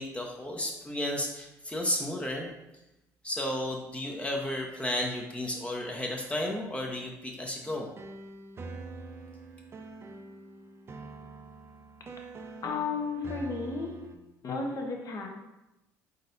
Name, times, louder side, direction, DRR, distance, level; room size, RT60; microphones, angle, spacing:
voice 1, 0.0-2.5 3.2-7.9, left 1 dB, 15° left, 0 dB, 0.7 m, -33 dB
sound 1, 7.6-14.2, right 3 dB, 35° right, 0.5 m, -45 dB
voice 2, 12.6-13.9 14.4-15.3, left 4 dB, 45° left, 1 dB, 0.9 m, -33 dB
4.2 x 3.9 x 2.6 m, 0.95 s
hypercardioid pair, 70°, 8 cm